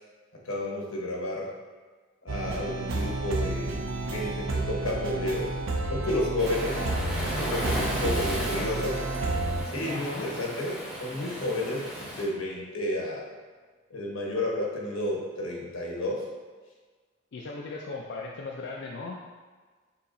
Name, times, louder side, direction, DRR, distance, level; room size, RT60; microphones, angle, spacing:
voice 1, 0.4-1.5 2.2-5.5 5.9-6.8 7.4-8.9 9.6-13.2 13.9-16.2, left 1 dB, 85° left, -2 dB, 1.1 m, -31 dB
sound 1, 2.3-9.6, right 2 dB, 75° right, 0.6 m, -31 dB
Waves surf, 6.4-12.2, equal, 5° right, 0.7 m, -35 dB
Electric guitar, 6.6-12.6, equal, 30° right, 1.1 m, -45 dB
voice 2, 6.7-7.1 8.3-8.9 9.8-10.3 17.3-19.4, left 3 dB, 55° left, -2 dB, 0.4 m, -38 dB
6.7 x 2.9 x 2.6 m, 1.4 s
head